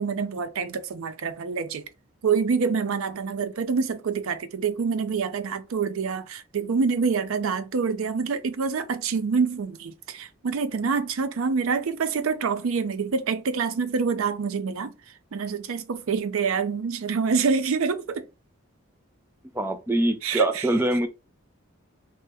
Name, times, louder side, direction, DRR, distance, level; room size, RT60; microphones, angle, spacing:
voice 1, 0.0-1.9 2.2-14.9 15.3-18.2 20.2-20.7, right 5 dB, 80° right, 0.4 m, -26 dB
voice 2, 19.5-21.1, right 1 dB, 10° right, 0.3 m, -24 dB
2.9 x 2.1 x 3.4 m
head